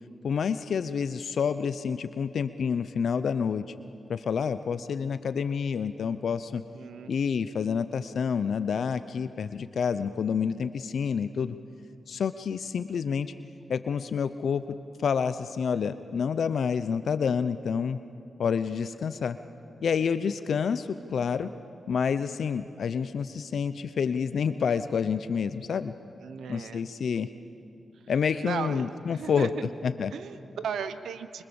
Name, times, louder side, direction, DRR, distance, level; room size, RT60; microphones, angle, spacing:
voice 1, 0.2-3.7 4.1-6.6 7.1-11.6 12.1-13.3 13.7-14.8 15.0-18.0 18.4-19.4 19.8-21.5 21.9-25.9 26.5-27.3 28.1-29.5 29.8-30.1, left 6 dB, 75° left, 12 dB, 0.7 m, -28 dB
voice 2, 6.5-7.2 20.5-20.6 26.2-26.9 28.4-29.7 30.1-31.4, right 7 dB, 85° right, 12 dB, 1.0 m, -36 dB
25.5 x 25.0 x 7.1 m, 2.5 s
cardioid pair, 55°, 0 cm